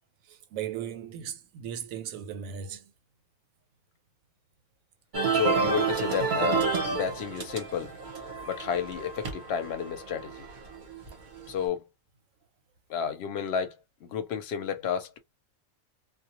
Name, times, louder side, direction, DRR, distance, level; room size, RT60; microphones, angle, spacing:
voice 1, 0.3-2.9, right 9 dB, 90° right, 1.0 m, -37 dB
sound 1, 5.1-11.5, right 5 dB, 45° right, 0.7 m, -30 dB
voice 2, 5.3-7.9 8.5-10.5 11.5-11.9 12.9-15.2, left 8 dB, 60° left, 0.8 m, -31 dB
2.2 x 2.1 x 2.8 m
omnidirectional pair, 1.4 m